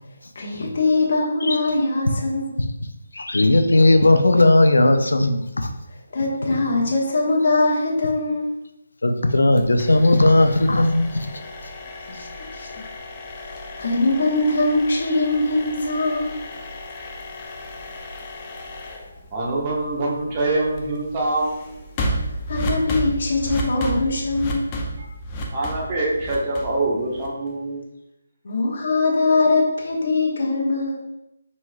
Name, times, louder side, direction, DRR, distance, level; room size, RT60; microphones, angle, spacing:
voice 1, 0.3-2.5 6.1-8.5 12.1-12.7 13.4-16.5 22.5-24.8 28.4-31.1, left 2 dB, 55° left, -2 dB, 1.2 m, -22 dB
voice 2, 3.1-5.7 9.0-11.3, left 2 dB, 90° left, 7 dB, 0.5 m, -16 dB
sound 1, 9.6-27.5, equal, 25° left, 0.7 m, -33 dB
voice 3, 19.3-21.6 25.0-25.1 25.5-27.8, right 2 dB, 30° right, -4 dB, 1.1 m, -24 dB
4.4 x 4.1 x 2.3 m, 0.88 s
figure-of-eight pair, 160°, 0 cm